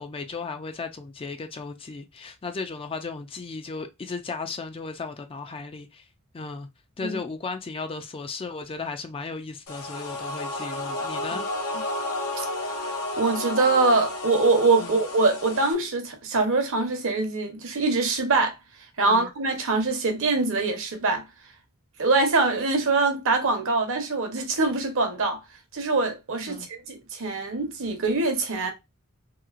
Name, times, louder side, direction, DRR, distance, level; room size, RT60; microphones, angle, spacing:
voice 1, 0.0-6.0 6.3-6.7 7.0-11.5 14.8-15.0 19.0-19.3 26.5-26.7, left 4 dB, 25° left, 0.4 m, -35 dB
sound 1, 9.7-15.7, left 2 dB, 80° left, 0.8 m, -32 dB
voice 2, 13.2-18.6 19.0-21.2 22.0-25.4 25.7-28.7, right 3 dB, 65° right, 0.8 m, -23 dB
2.9 x 2.8 x 2.4 m
head